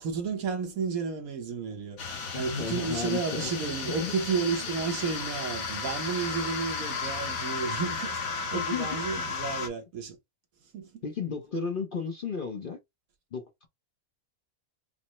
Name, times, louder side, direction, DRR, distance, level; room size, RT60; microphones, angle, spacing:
voice 1, 0.0-2.0 2.3-10.2 10.7-11.0, right 5 dB, 70° right, 1.4 m, -32 dB
sound 1, 2.0-9.7, left 5 dB, 70° left, 1.3 m, -34 dB
voice 2, 2.3-4.1 8.5-9.0 11.0-12.8 13.3-13.7, left 5 dB, 50° left, 0.7 m, -34 dB
5.1 x 2.0 x 3.0 m
omnidirectional pair, 1.5 m